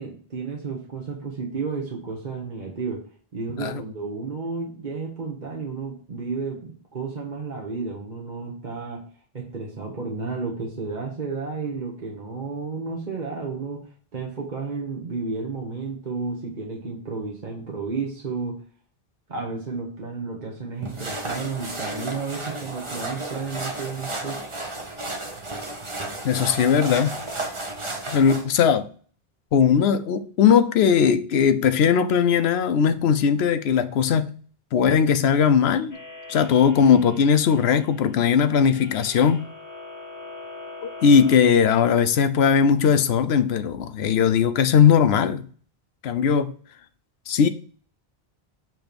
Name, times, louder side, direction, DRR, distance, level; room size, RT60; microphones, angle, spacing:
voice 1, 0.0-3.0 3.3-9.0 9.3-13.8 14.1-18.6 19.3-24.5, right 4 dB, 50° right, 1.2 m, -32 dB
sound 1, 20.8-28.4, right 2 dB, 30° right, 1.0 m, -33 dB
voice 2, 26.2-27.2 28.1-28.9 29.5-34.3 34.7-36.0 36.3-39.5 40.8-45.5 46.0-46.5 47.3-47.5, left 7 dB, 85° left, 0.9 m, -19 dB
sound 2, 35.9-41.4, left 3 dB, 20° left, 0.9 m, -42 dB
7.6 x 3.1 x 5.1 m
omnidirectional pair, 1.0 m